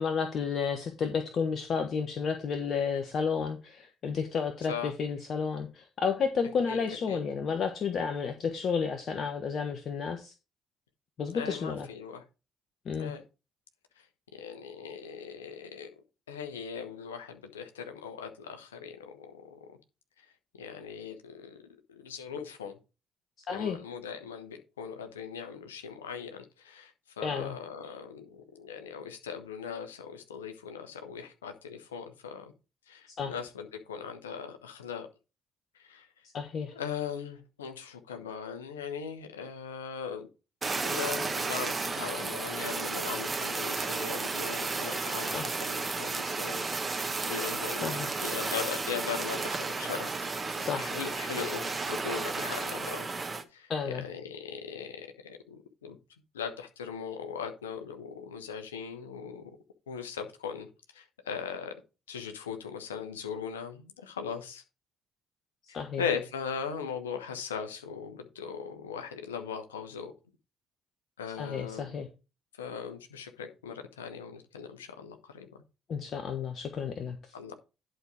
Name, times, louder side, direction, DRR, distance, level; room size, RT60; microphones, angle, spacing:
voice 1, 0.0-10.3 11.2-11.9 12.8-13.1 23.5-23.8 27.2-27.6 33.2-33.3 36.3-36.7 45.3-45.5 47.8-48.1 50.5-51.0 53.7-54.0 65.7-66.0 71.4-72.1 75.9-77.2, left 6 dB, 55° left, 1.2 m, -31 dB
voice 2, 11.3-12.2 13.0-13.2 14.4-15.9 16.3-19.6 20.6-21.6 21.9-22.8 23.5-32.5 32.9-35.1 35.8-36.1 36.7-40.3 40.8-46.6 47.0-50.1 50.7-53.1 53.5-53.7 54.0-56.0 56.3-59.4 59.9-60.7 60.9-61.7 62.1-64.6 65.7-70.1 71.2-71.9 72.6-75.5 77.3-77.5, left 7 dB, 90° left, 1.2 m, -39 dB
Fire, 40.6-53.4, right 4 dB, 30° right, 1.5 m, -33 dB
11.0 x 4.4 x 4.9 m
hypercardioid pair, 50°, 0 cm